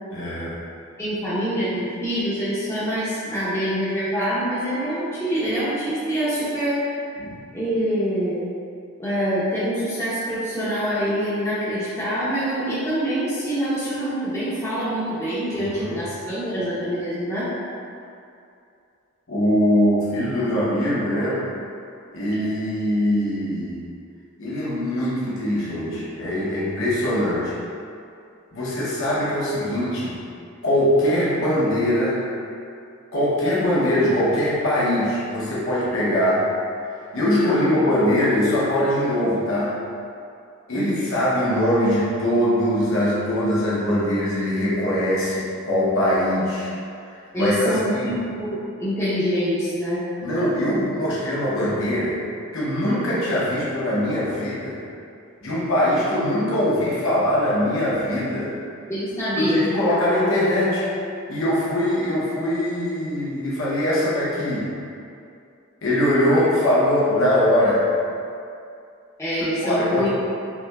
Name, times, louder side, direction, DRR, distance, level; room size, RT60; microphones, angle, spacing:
voice 1, 0.1-0.6 7.2-7.4 15.5-16.0 19.3-21.4 22.1-23.9 24.4-27.5 28.5-30.2 30.6-32.2 33.1-36.5 37.1-39.7 40.7-46.7 47.3-48.2 50.2-52.2 52.5-54.8 55.4-58.5 59.3-60.9 61.3-64.7 65.8-67.9 69.6-70.1, left 1 dB, 65° left, -8 dB, 0.8 m, -22 dB
voice 2, 1.0-6.8 7.5-8.4 9.0-17.5 37.4-37.8 40.7-41.0 47.3-50.1 58.9-59.6 69.2-70.1, equal, 15° left, -12 dB, 0.7 m, -25 dB
5.6 x 2.7 x 2.3 m, 2.5 s
head